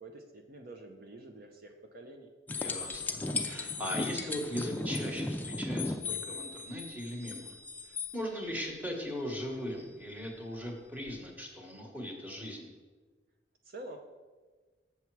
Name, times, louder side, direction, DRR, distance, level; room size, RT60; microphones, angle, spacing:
voice 1, 0.0-2.3 13.6-14.0, right 2 dB, 55° right, 4 dB, 0.6 m, -47 dB
sound 1, 2.5-8.1 11.1-11.2, left 3 dB, 10° left, 0.4 m, -36 dB
voice 2, 2.5-7.5 8.1-12.7, equal, 10° right, 1 dB, 1.1 m, -39 dB
7.0 x 7.0 x 4.6 m, 1.3 s
head